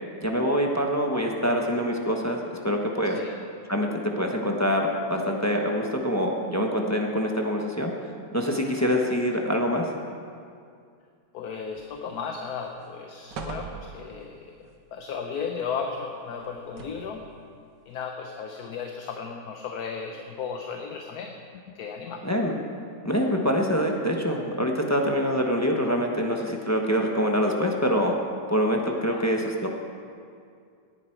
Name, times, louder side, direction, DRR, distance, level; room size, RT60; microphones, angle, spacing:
voice 1, 0.2-3.2 3.7-3.9 4.2-7.9 8.3-9.8 22.2-22.6 23.0-28.2 28.5-29.7, equal, 10° left, 1 dB, 0.9 m, -25 dB
voice 2, 11.3-17.2 17.9-22.2 29.1-29.3, left 6 dB, 65° left, 3 dB, 1.3 m, -35 dB
sound 1, 11.7-12.3 12.7-12.8 13.3-14.3 16.4-17.2 18.0-18.1, right 4 dB, 75° right, 1.8 m, -40 dB
17.5 x 11.0 x 4.6 m, 2.3 s
omnidirectional pair, 1.9 m